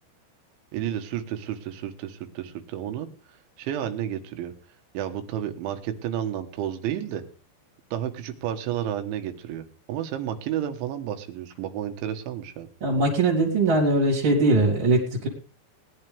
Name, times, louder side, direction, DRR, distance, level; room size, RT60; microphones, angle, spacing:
voice 1, 0.7-3.1 3.6-4.5 5.0-7.2 7.9-12.7, right 10 dB, 80° right, 7 dB, 3.7 m, -31 dB
voice 2, 12.8-15.3, right 2 dB, 30° right, -6 dB, 3.0 m, -21 dB
20.0 x 11.0 x 3.5 m, 0.36 s
omnidirectional pair, 5.3 m